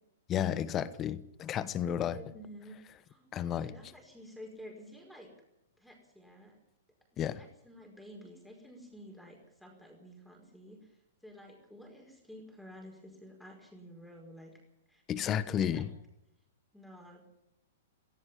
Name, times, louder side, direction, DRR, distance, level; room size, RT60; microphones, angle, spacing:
voice 1, 0.3-2.2 3.3-3.7 7.2-7.4 15.1-15.9, left 9 dB, 30° left, 1.1 m, -32 dB
voice 2, 1.7-2.8 3.0-3.3 3.6-5.3 5.8-6.6 7.1-11.0 11.2-14.6 14.9-15.8 16.7-17.2, equal, ahead, 5.1 m, -51 dB
16.5 x 16.0 x 10.0 m
hypercardioid pair, 115°, 0 cm